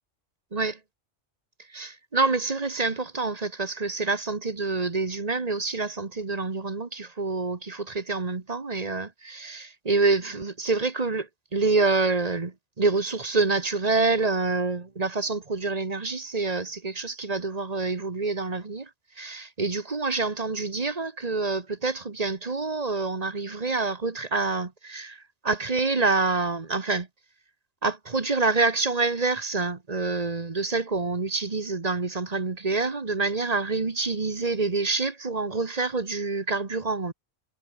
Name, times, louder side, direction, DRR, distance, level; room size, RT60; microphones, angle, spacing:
voice 1, 1.7-18.9 19.2-27.1 27.8-37.1, right 3 dB, 35° right, 1.4 m, -27 dB
omnidirectional pair, 1.3 m